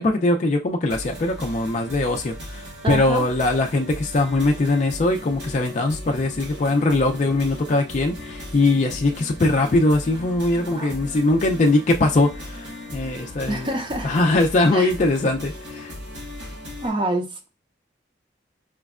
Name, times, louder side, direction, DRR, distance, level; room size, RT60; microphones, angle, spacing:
voice 1, 0.0-13.7 14.0-15.9, left 2 dB, 40° left, 0.4 m, -21 dB
sound 1, 0.9-16.9, left 1 dB, 80° right, 1.5 m, -37 dB
voice 2, 2.8-3.3 10.6-10.9 13.5-14.2 14.7-14.9 16.8-17.5, right 2 dB, 25° right, 0.5 m, -27 dB
4.9 x 2.1 x 2.3 m
head